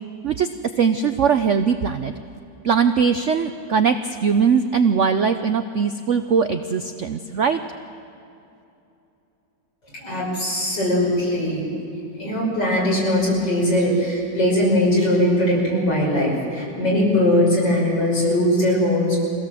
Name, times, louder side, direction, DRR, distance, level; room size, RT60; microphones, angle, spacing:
voice 1, 0.8-2.1 2.6-7.6, right 6 dB, 85° right, 8 dB, 0.6 m, -20 dB
voice 2, 9.9-11.7 12.1-19.2, left 1 dB, 60° left, -4 dB, 6.5 m, -20 dB
24.0 x 17.0 x 7.6 m, 2.7 s
omnidirectional pair, 2.1 m